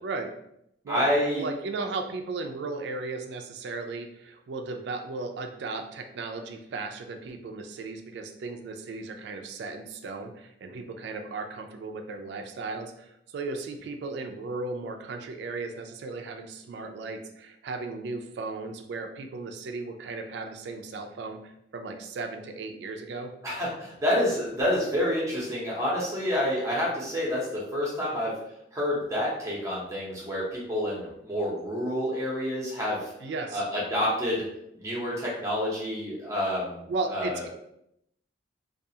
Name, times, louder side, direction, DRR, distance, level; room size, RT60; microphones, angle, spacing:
voice 1, 0.0-0.3 0.8-23.4 33.2-33.6 36.9-37.5, right 3 dB, 65° right, 5 dB, 0.3 m, -36 dB
voice 2, 0.9-1.4 23.4-28.3 28.7-33.1 33.5-34.4 34.7-36.8 37.1-37.4, equal, 15° right, -6 dB, 0.7 m, -28 dB
2.3 x 2.3 x 2.7 m, 0.76 s
head